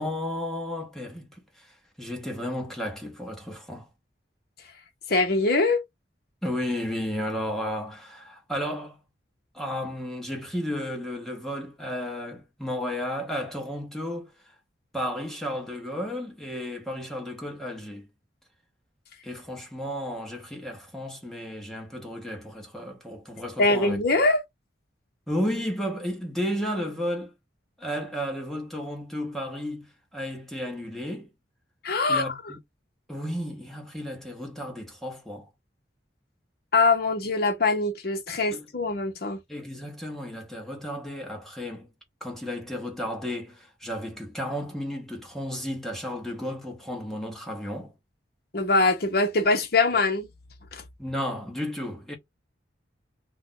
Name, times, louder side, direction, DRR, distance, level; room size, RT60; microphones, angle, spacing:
voice 1, 0.0-3.9 6.4-9.0 9.5-14.5 14.9-18.1 19.2-24.0 25.3-27.3 27.8-31.3 32.1-32.6 33.1-35.5 38.5-38.7 39.5-41.9 42.2-47.9 51.0-52.2, equal, ahead, 0.9 m, -33 dB
voice 2, 5.1-5.8 23.6-24.4 31.8-32.4 36.7-39.4 48.5-50.3 50.7-50.8, left 3 dB, 50° left, 0.8 m, -23 dB
2.5 x 2.2 x 3.8 m
head